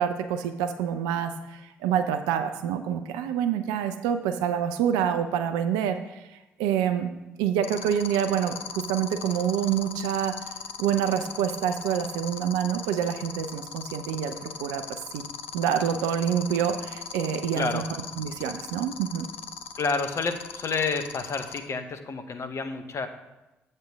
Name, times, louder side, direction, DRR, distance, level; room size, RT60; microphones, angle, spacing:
voice 1, 0.0-6.3 6.6-7.1 7.4-10.4 10.8-15.2 15.5-17.8 18.2-19.3, right 9 dB, 70° right, 9 dB, 0.5 m, -27 dB
sound 1, 7.6-21.6, left 7 dB, 85° left, 0.4 m, -37 dB
voice 2, 17.5-17.9 19.8-23.1, left 4 dB, 45° left, 8 dB, 0.9 m, -29 dB
7.8 x 6.7 x 3.5 m, 1.0 s
figure-of-eight pair, 40°, 7 cm